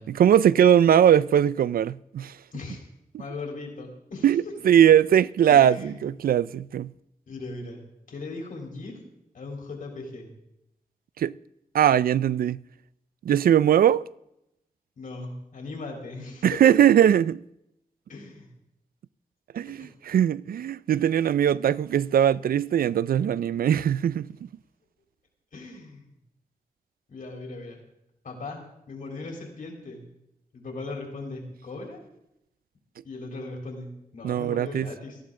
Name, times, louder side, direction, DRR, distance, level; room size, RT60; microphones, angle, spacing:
voice 1, 0.1-2.3 4.2-6.9 11.2-11.3 11.7-12.6 13.3-14.0 16.4-17.4 19.5-24.3 34.2-34.9, right 9 dB, 75° right, 0.4 m, -20 dB
voice 2, 3.2-4.3 5.5-6.0 7.3-9.0 9.3-10.3 15.0-16.9 18.1-18.5 19.7-19.9 25.5-26.1 27.1-27.8 28.2-30.0 30.5-32.0 33.0-35.2, left 3 dB, 65° left, 3.7 m, -38 dB
18.0 x 14.0 x 3.8 m
wide cardioid pair, 160°, 15 cm